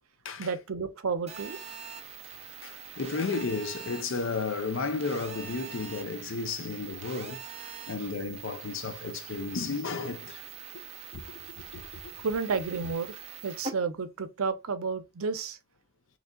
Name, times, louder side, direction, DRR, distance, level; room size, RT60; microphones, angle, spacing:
voice 1, 0.4-1.6 12.2-15.6, right 5 dB, 85° right, 0.5 m, -31 dB
Telephone, 1.3-13.7, right 6 dB, 30° right, 0.5 m, -43 dB
voice 2, 2.6-10.4 11.1-11.5 11.7-12.1, left 4 dB, 60° left, 0.5 m, -33 dB
3.7 x 3.1 x 2.2 m
head